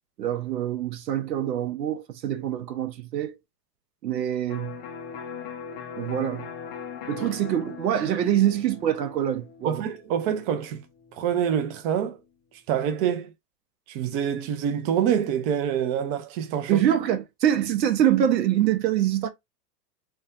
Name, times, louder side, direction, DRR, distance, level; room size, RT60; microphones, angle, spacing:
voice 1, 0.2-3.4 4.0-4.8 6.0-6.5 7.1-9.8 16.7-19.3, right 11 dB, 90° right, 0.6 m, -25 dB
Electric guitar, 4.5-12.1, left 7 dB, 25° left, 0.3 m, -41 dB
voice 2, 9.6-10.8 11.1-12.2 12.7-13.3 13.9-16.8, right 8 dB, 40° right, 0.5 m, -26 dB
2.5 x 2.2 x 2.3 m
hypercardioid pair, 105°, 49 cm